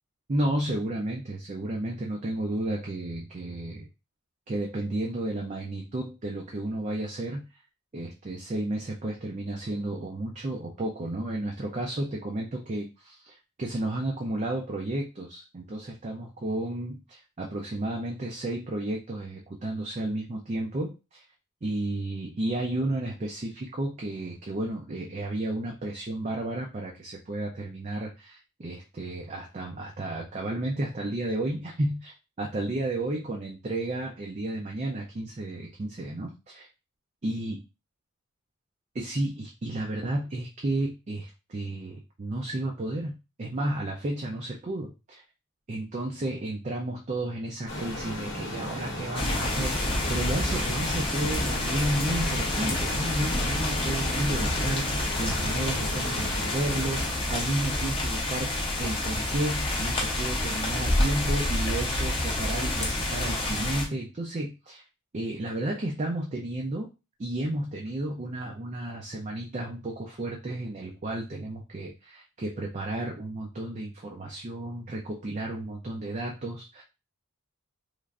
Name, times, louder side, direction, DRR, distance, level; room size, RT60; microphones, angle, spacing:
voice 1, 0.3-3.9 4.5-7.6 7.9-21.2 21.6-36.7 37.2-37.6 38.9-45.2 45.7-58.5 58.7-64.8 65.1-66.9 67.2-76.8, right 1 dB, 30° right, -1 dB, 0.4 m, -32 dB
sound 1, 47.7-57.1, left 1 dB, 55° left, 0.8 m, -36 dB
sound 2, 49.1-63.8, left 1 dB, 25° left, 0.6 m, -28 dB
3.2 x 2.5 x 2.4 m, 0.28 s
head